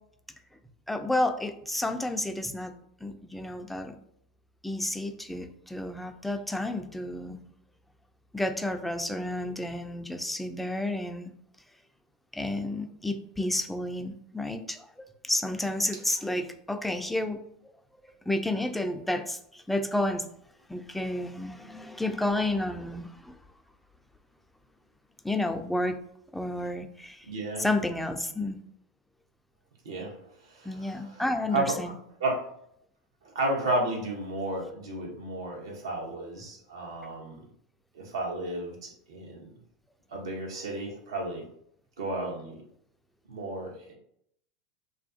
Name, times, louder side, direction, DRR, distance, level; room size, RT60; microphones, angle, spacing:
voice 1, 0.9-2.8 3.0-4.0 4.6-7.4 8.3-11.3 12.3-17.4 18.3-20.3 20.7-23.4 25.2-26.0 26.3-27.3 27.6-28.6 30.6-32.0, left 1 dB, 5° left, 7 dB, 0.3 m, -31 dB
voice 2, 27.2-27.6 29.8-31.2 31.5-31.9 32.2-32.4 33.2-37.5 37.9-39.5 40.1-41.5 42.0-42.6 43.3-43.9, right 2 dB, 80° right, 0 dB, 0.7 m, -33 dB
2.4 x 2.3 x 2.5 m, 0.69 s
hypercardioid pair, 90°, 3 cm